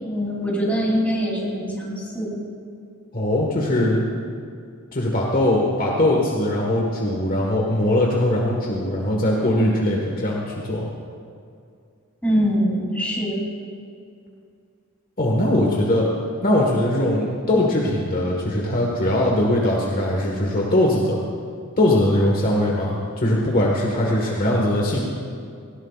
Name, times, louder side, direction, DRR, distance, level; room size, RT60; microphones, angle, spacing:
voice 1, 0.0-2.4 12.2-13.4, equal, 5° left, -5 dB, 3.2 m, -23 dB
voice 2, 3.1-4.1 4.9-10.9 15.2-16.1 16.4-21.2 21.8-25.0, left 1 dB, 40° left, -2 dB, 1.5 m, -21 dB
18.5 x 17.0 x 2.4 m, 2.3 s
head